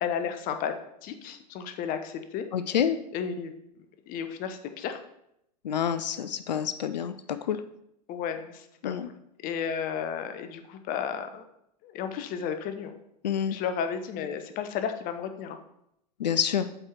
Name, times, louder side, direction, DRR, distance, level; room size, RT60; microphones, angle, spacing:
voice 1, 0.0-0.7 1.0-2.5 3.1-3.5 4.1-5.0 8.1-8.9 9.4-11.4 11.8-13.0 13.5-15.6, left 7 dB, 40° left, 8 dB, 0.8 m, -33 dB
voice 2, 2.5-3.0 5.6-7.6 8.8-9.1 13.2-13.6 16.2-16.7, left 8 dB, 80° left, 12 dB, 0.4 m, -28 dB
7.6 x 4.6 x 4.4 m, 0.79 s
hypercardioid pair, 90°, 21 cm